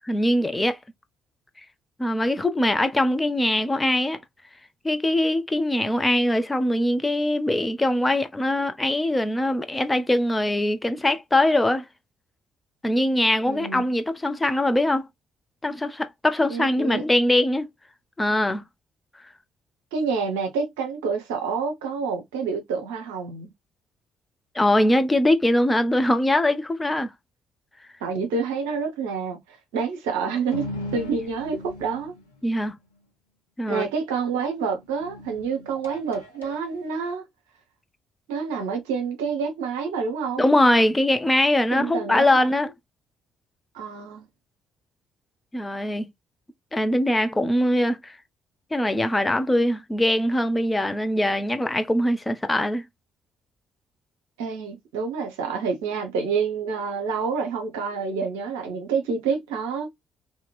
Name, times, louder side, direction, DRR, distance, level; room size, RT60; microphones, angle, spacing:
voice 1, 0.1-0.8 2.0-4.2 4.8-11.9 12.8-15.1 15.6-17.7 18.2-18.6 24.5-27.1 32.4-32.8 33.6-33.9 40.4-42.7 45.5-46.1 46.7-48.2 48.7-52.8, left 1 dB, 15° left, 0.6 m, -22 dB
voice 2, 13.5-14.0 16.5-17.0 19.9-23.5 28.0-32.1 33.7-37.3 38.3-40.5 41.7-42.6 43.7-44.2 54.4-59.9, right 5 dB, 75° right, 0.7 m, -28 dB
sound 1, 30.5-32.5 34.8-37.1, left 2 dB, 85° left, 0.5 m, -37 dB
2.9 x 2.8 x 2.2 m
figure-of-eight pair, 45°, 0 cm